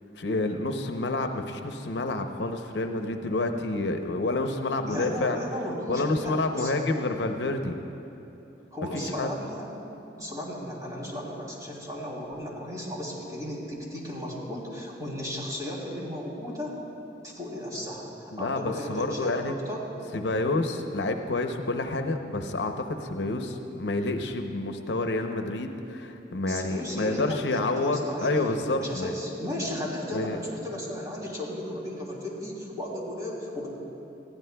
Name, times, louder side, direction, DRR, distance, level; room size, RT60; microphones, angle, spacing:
voice 1, 0.2-5.4 5.9-7.7 8.9-9.3 18.3-19.6 20.1-29.1 30.1-30.4, left 2 dB, 75° left, 5 dB, 0.7 m, -28 dB
voice 2, 4.9-6.7 8.7-9.7 10.2-16.7 17.2-19.9 26.5-28.3 28.8-33.7, left 1 dB, 20° right, -4 dB, 2.8 m, -35 dB
20.5 x 15.5 x 2.3 m, 2.9 s
head